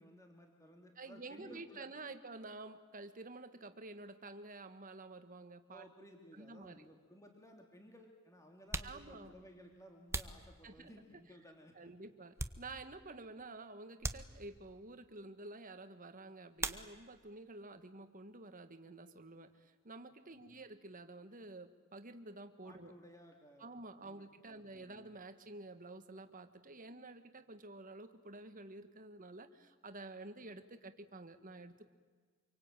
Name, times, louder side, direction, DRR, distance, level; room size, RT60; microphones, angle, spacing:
voice 1, 0.0-1.9 5.7-11.9 20.2-20.6 22.6-23.7 24.0-25.1, equal, 15° left, 2 dB, 2.8 m, -58 dB
voice 2, 1.0-5.8 6.3-6.8 8.8-9.4 10.6-10.9 11.7-22.9 23.6-31.9, right 2 dB, 40° right, 9 dB, 1.7 m, -50 dB
sound 1, 6.8-6.9 7.8-7.9 8.5-11.2 11.7-13.1 13.4-13.5 14.0-14.8 16.5-17.3 17.6-18.3 18.6-20.7, right 2 dB, 10° right, 1.0 m, -45 dB
26.5 x 24.0 x 9.1 m, 1.5 s
head